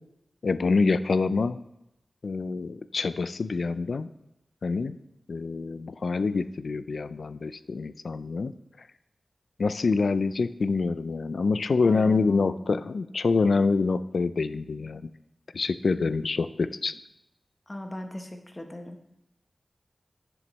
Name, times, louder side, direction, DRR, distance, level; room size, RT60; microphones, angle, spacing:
voice 1, 0.4-1.6 2.2-4.1 4.6-5.0 5.3-8.5 9.6-15.1 15.5-16.9, left 4 dB, 80° left, 14 dB, 0.3 m, -26 dB
voice 2, 11.8-12.8 17.7-19.0, left 1 dB, 25° left, 5 dB, 0.9 m, -39 dB
10.0 x 6.9 x 3.1 m, 0.84 s
wide cardioid pair, 70°, 0 cm